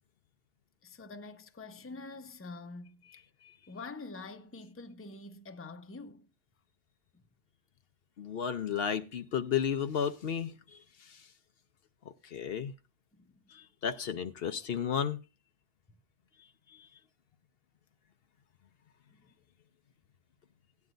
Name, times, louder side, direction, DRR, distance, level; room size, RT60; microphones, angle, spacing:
voice 1, 0.8-3.2 3.7-6.3 7.1-7.2 13.1-13.3 19.1-19.3, left 3 dB, 15° left, 0.7 m, -46 dB
voice 2, 8.2-11.3 12.0-12.7 13.5-15.2 16.7-16.9, left 8 dB, 65° left, 0.9 m, -34 dB
16.5 x 9.6 x 2.5 m
omnidirectional pair, 1.1 m